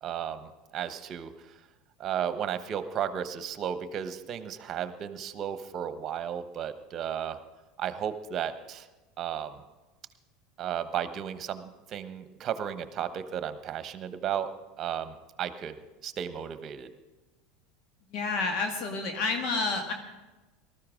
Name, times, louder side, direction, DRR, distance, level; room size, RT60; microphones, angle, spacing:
voice 1, 0.0-1.3 2.0-7.4 7.8-8.9 9.2-9.6 10.6-14.5 14.8-15.8 16.0-16.9, right 9 dB, 40° right, 11 dB, 1.1 m, -34 dB
voice 2, 18.1-19.9, left 3 dB, 55° left, 3 dB, 1.8 m, -29 dB
19.0 x 13.5 x 3.7 m, 1.1 s
hypercardioid pair, 80°, 0 cm